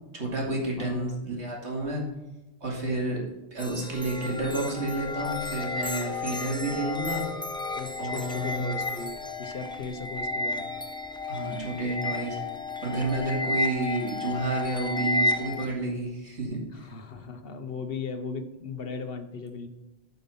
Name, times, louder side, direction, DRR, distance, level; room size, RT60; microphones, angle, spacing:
voice 1, 0.1-2.0 2.6-3.2 3.5-7.2 8.0-8.7 11.3-12.4 12.8-16.6, right 2 dB, 90° right, -3 dB, 2.8 m, -30 dB
voice 2, 0.8-1.2 7.7-10.7 16.7-19.7, left 4 dB, 60° left, 7 dB, 1.2 m, -37 dB
sound 1, 3.6-15.7, left 2 dB, 5° left, 0.5 m, -32 dB
9.6 x 5.5 x 5.4 m, 1.0 s
omnidirectional pair, 1.1 m